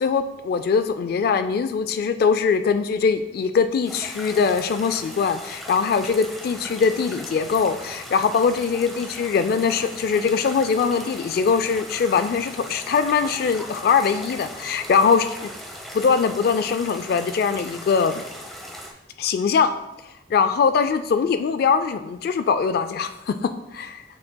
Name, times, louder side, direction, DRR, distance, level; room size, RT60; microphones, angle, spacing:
voice 1, 0.0-15.5 15.9-18.2 19.2-19.7 20.3-24.0, left 5 dB, 60° left, 10 dB, 0.3 m, -22 dB
sound 1, 3.8-18.9, equal, ahead, 0.8 m, -38 dB
7.5 x 6.0 x 2.2 m, 0.92 s
head